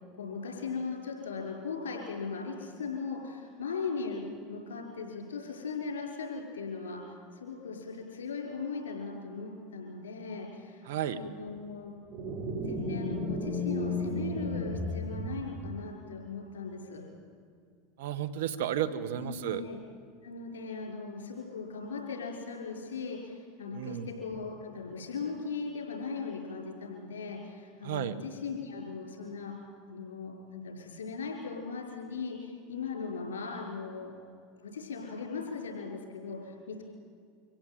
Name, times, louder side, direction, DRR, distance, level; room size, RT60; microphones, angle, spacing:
voice 1, 0.1-11.9 12.6-17.0 19.2-19.8 20.2-29.5 29.9-34.1 34.6-36.8, left 4 dB, 85° left, 1 dB, 5.8 m, -38 dB
voice 2, 10.9-11.2 18.0-19.6 23.7-24.1 27.8-28.1, right 10 dB, 75° right, 14 dB, 1.3 m, -32 dB
sound 1, 12.1-15.8, left 1 dB, 50° right, 4.5 m, -33 dB
25.5 x 16.5 x 9.3 m, 2.2 s
hypercardioid pair, 90°, 0 cm